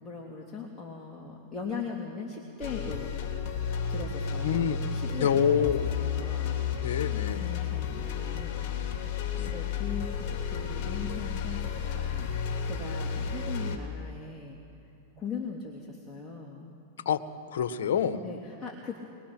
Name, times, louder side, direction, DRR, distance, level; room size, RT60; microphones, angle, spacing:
voice 1, 0.0-3.1 3.9-5.7 6.0-6.6 7.3-9.1 9.5-12.3 12.6-14.6 15.2-16.7 18.2-19.0, left 5 dB, 15° left, -3 dB, 2.7 m, -40 dB
sound 1, 2.6-13.8, left 7 dB, 50° left, 2.9 m, -32 dB
voice 2, 4.4-4.8 5.1-5.9 6.8-7.5 9.3-9.5 17.0-17.2 17.5-18.2, left 8 dB, 75° left, 9 dB, 1.2 m, -27 dB
22.0 x 21.0 x 6.0 m, 2.8 s
hypercardioid pair, 115°, 0 cm